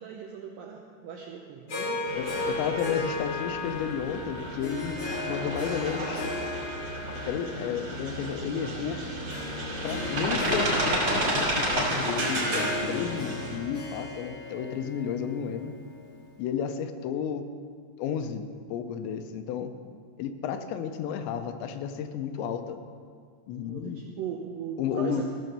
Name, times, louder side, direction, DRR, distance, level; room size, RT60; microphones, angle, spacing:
voice 1, 0.0-2.6 23.6-25.2, right 7 dB, 80° right, 1 dB, 1.9 m, -39 dB
Harp, 1.7-16.1, left 3 dB, 55° left, 1.4 m, -36 dB
voice 2, 2.1-6.3 7.3-9.0 9.8-15.7 16.4-17.4 18.0-19.7 20.2-22.8 23.5-24.0 24.8-25.2, left 7 dB, 90° left, 8 dB, 3.0 m, -32 dB
sound 1, 2.1-13.6, right 1 dB, 45° right, 3.3 m, -31 dB
15.5 x 6.8 x 6.7 m, 2.1 s
omnidirectional pair, 5.0 m